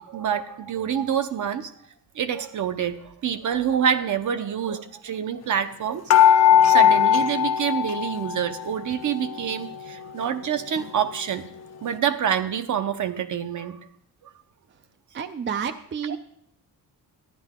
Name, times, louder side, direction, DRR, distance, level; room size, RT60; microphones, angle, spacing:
voice 1, 0.0-1.7 2.1-6.0 6.6-11.4 11.8-13.8, right 8 dB, 55° right, 10 dB, 0.8 m, -26 dB
sound 1, 6.1-8.6 8.9-9.9 10.4-10.5 10.8-10.9, left 10 dB, 45° left, 0.5 m, -19 dB
voice 2, 15.1-16.2, right 7 dB, 35° right, 10 dB, 0.4 m, -30 dB
13.5 x 10.5 x 3.7 m, 0.70 s
wide cardioid pair, 180°, 36 cm